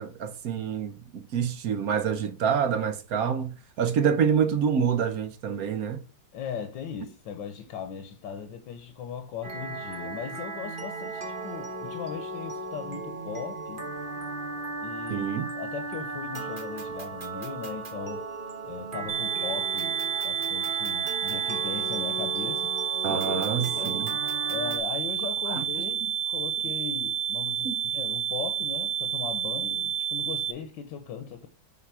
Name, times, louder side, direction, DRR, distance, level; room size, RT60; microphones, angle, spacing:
voice 1, 0.0-6.0 15.1-15.5 23.0-24.1 25.5-25.6 27.6-27.8, right 7 dB, 60° right, 1.0 m, -27 dB
voice 2, 6.3-13.9 14.8-18.2 18.6-20.0 20.2-22.7 23.1-24.0 24.5-31.5, left 7 dB, 80° left, 1.5 m, -38 dB
sound 1, 9.4-24.8, right 2 dB, 30° right, 1.2 m, -36 dB
sound 2, 19.1-30.5, right 9 dB, 80° right, 1.3 m, -30 dB
8.2 x 4.0 x 4.6 m
omnidirectional pair, 2.0 m